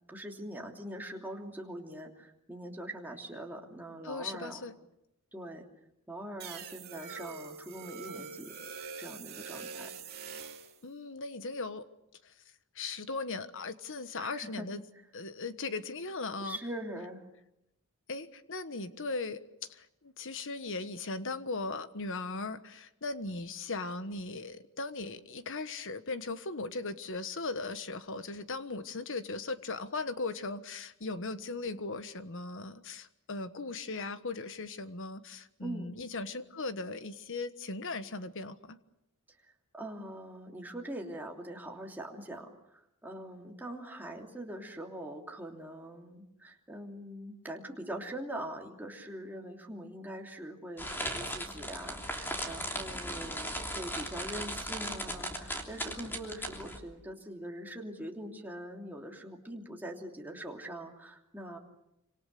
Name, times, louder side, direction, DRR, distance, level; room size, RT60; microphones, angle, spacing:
voice 1, 0.1-4.6 5.3-5.6 6.1-8.5 8.8-9.9 14.2-14.7 16.4-17.2 35.6-35.9 39.7-61.6, right 1 dB, 10° right, 0 dB, 3.0 m, -43 dB
voice 2, 4.0-4.7 10.8-11.8 12.2-12.3 12.7-14.8 15.1-16.6 18.1-19.4 19.7-38.8, left 3 dB, 60° left, 11 dB, 1.4 m, -38 dB
sound 1, 6.4-10.8, right 5 dB, 45° right, 3.0 m, -44 dB
sound 2, 50.8-56.8, equal, 10° left, 3.2 m, -38 dB
27.5 x 26.0 x 6.8 m, 0.86 s
head